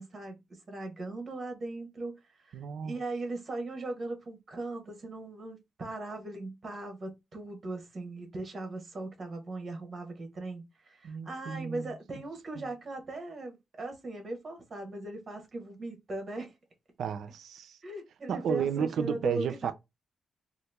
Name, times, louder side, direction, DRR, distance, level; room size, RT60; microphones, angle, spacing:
voice 1, 0.0-16.5 17.8-19.7, right 2 dB, 30° right, 1.0 m, -39 dB
voice 2, 2.5-3.0 11.0-11.9 12.6-12.7 17.0-17.8 18.3-19.7, right 8 dB, 70° right, 0.4 m, -33 dB
2.9 x 2.4 x 3.4 m
wide cardioid pair, 165°, 0 cm